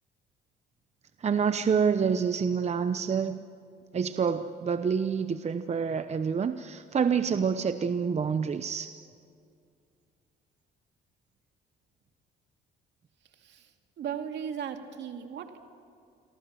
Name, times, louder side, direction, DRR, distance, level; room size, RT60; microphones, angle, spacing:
voice 1, 1.2-3.4 3.9-9.0, right 6 dB, 35° right, 10 dB, 0.9 m, -27 dB
voice 2, 14.0-15.6, right 8 dB, 65° right, 5 dB, 2.5 m, -36 dB
28.0 x 23.5 x 7.6 m, 2.4 s
cardioid pair, 90°, 19 cm